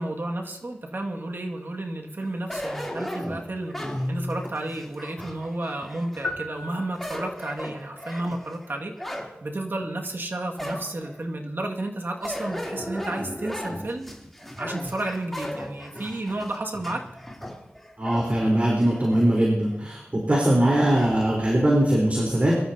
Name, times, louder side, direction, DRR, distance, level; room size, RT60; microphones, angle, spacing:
voice 1, 0.0-14.1 14.6-17.0, right 1 dB, 55° right, 1 dB, 2.0 m, -32 dB
sound 1, 2.5-6.3 6.8-9.3 9.8-9.9 10.6-11.2 12.2-19.3 19.7-19.8 21.0-21.3, equal, 5° left, 3.2 m, -36 dB
Guitar, 3.7-5.0, left 1 dB, 25° left, 3.3 m, -34 dB
sound 2, 6.2-7.7, left 2 dB, 55° left, 4.6 m, -36 dB
voice 2, 18.0-22.6, right 1 dB, 35° right, -3 dB, 4.0 m, -21 dB
23.5 x 13.0 x 2.8 m, 0.91 s
wide cardioid pair, 65°, 4 cm